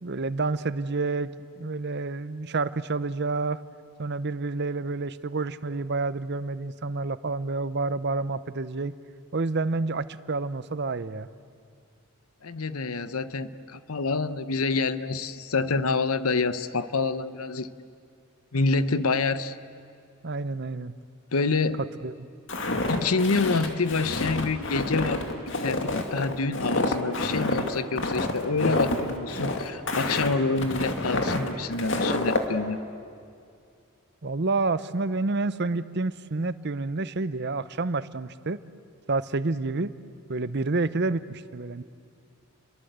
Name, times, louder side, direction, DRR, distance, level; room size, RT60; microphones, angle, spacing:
voice 1, 0.0-3.6 4.0-8.9 9.3-11.3 20.2-20.9 22.0-22.3 34.2-38.6 39.1-39.9 40.3-41.8, right 3 dB, 50° right, 15 dB, 0.8 m, -29 dB
voice 2, 12.4-17.7 18.5-19.6 21.3-21.8 22.9-32.8, left 3 dB, 85° left, 13 dB, 0.9 m, -27 dB
Walk footsteps, 22.5-32.5, left 2 dB, 60° left, 2.3 m, -28 dB
30.0 x 23.0 x 8.1 m, 2.3 s
head